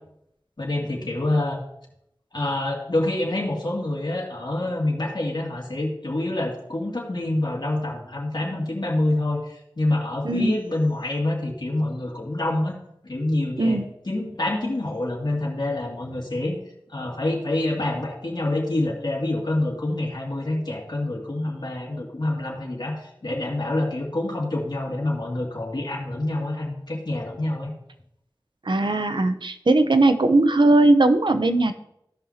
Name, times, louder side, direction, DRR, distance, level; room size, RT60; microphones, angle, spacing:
voice 1, 0.6-1.6 2.3-12.8 13.0-13.8 14.0-16.6 16.9-27.7, left 1 dB, 60° left, -4 dB, 2.4 m, -26 dB
voice 2, 28.7-31.8, right 2 dB, 70° right, 9 dB, 0.7 m, -19 dB
15.0 x 5.7 x 2.9 m, 0.77 s
wide cardioid pair, 40°, 8 cm